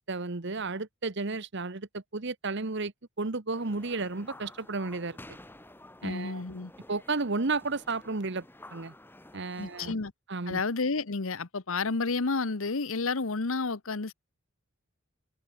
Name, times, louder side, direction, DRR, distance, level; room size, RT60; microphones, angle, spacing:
voice 1, 0.0-2.9 3.2-5.2 6.0-6.4 6.9-8.4 8.7-8.9 9.3-10.0 10.3-10.6, right 3 dB, 55° right, 1.1 m, -32 dB
sound 1, 3.5-9.9, left 1 dB, 10° left, 3.4 m, -51 dB
voice 2, 6.0-6.7 9.6-10.1 10.5-14.1, left 3 dB, 70° left, 1.0 m, -30 dB
head